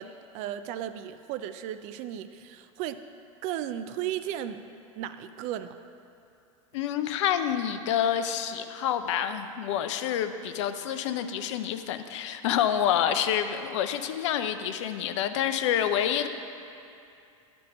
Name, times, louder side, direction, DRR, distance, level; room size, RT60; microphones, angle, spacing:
voice 1, 0.0-3.0 3.4-4.6 5.0-5.8, right 11 dB, 40° right, 11 dB, 0.4 m, -35 dB
voice 2, 6.7-16.3, left 9 dB, 60° left, 9 dB, 0.6 m, -28 dB
12.0 x 4.5 x 5.4 m, 2.6 s
hypercardioid pair, 95°, 18 cm